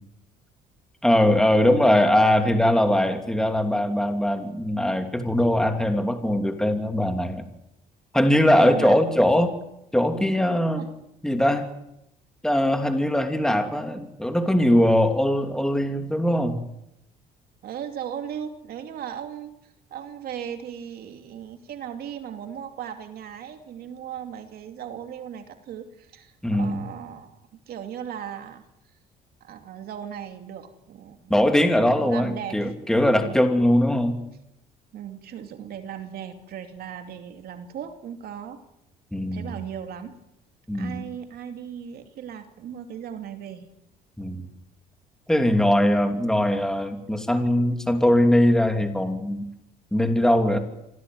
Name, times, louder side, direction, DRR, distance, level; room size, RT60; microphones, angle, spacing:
voice 1, 1.0-7.4 8.1-9.5 9.9-10.8 11.2-11.7 12.4-16.6 26.4-26.8 31.3-34.2 39.1-39.6 40.7-41.0 44.2-44.5 45.3-49.5 49.9-50.6, left 1 dB, 5° left, 6 dB, 2.9 m, -21 dB
voice 2, 8.6-9.0 10.7-10.8 17.6-28.6 29.4-31.2 31.9-32.6 33.2-33.4 34.9-38.6 39.3-40.1 40.7-43.7, right 9 dB, 65° right, 6 dB, 2.7 m, -37 dB
25.5 x 17.5 x 9.5 m, 0.83 s
cardioid pair, 110°, 17 cm